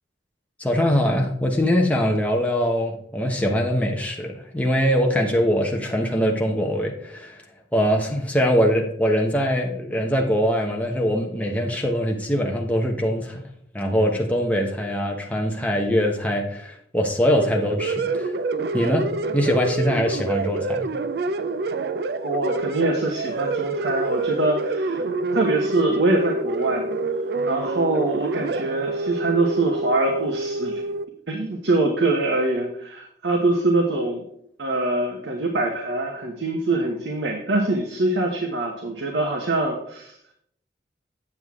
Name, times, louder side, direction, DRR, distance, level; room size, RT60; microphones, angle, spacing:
voice 1, 0.6-7.4 7.7-13.4 13.7-18.3 18.7-20.9, equal, 10° left, 0 dB, 0.9 m, -22 dB
sound 1, 17.3-31.0, right 2 dB, 65° right, 0.4 m, -27 dB
voice 2, 22.2-25.1 25.3-26.9 27.4-30.8 31.3-34.2 34.6-40.1, right 2 dB, 80° right, 2 dB, 1.1 m, -24 dB
8.0 x 7.3 x 3.6 m, 0.70 s
head